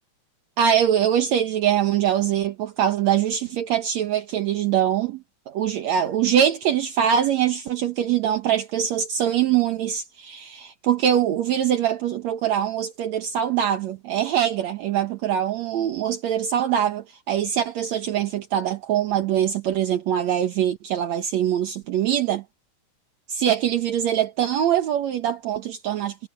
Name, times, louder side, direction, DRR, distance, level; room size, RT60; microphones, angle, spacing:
voice 1, 0.6-22.4 23.3-26.3, right 9 dB, 70° right, 2.4 m, -23 dB
omnidirectional pair, 3.4 m